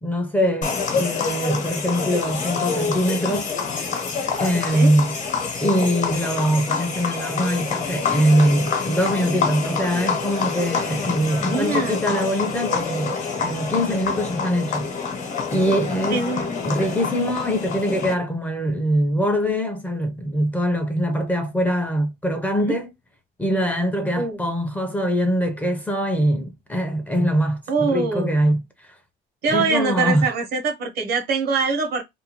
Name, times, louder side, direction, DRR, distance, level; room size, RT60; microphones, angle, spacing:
voice 1, 0.0-3.5 4.4-5.2 5.6-14.9 15.5-22.9 23.4-28.9 29.5-30.3, equal, 10° left, 0.6 m, -23 dB
sound 1, 0.6-18.1, left 5 dB, 45° left, 1.0 m, -27 dB
voice 2, 11.4-12.1 16.1-16.5 22.6-22.8 24.1-24.4 27.7-28.3 29.4-32.0, right 4 dB, 70° right, 1.0 m, -23 dB
2.6 x 2.3 x 2.8 m
cardioid pair, 110°, 17 cm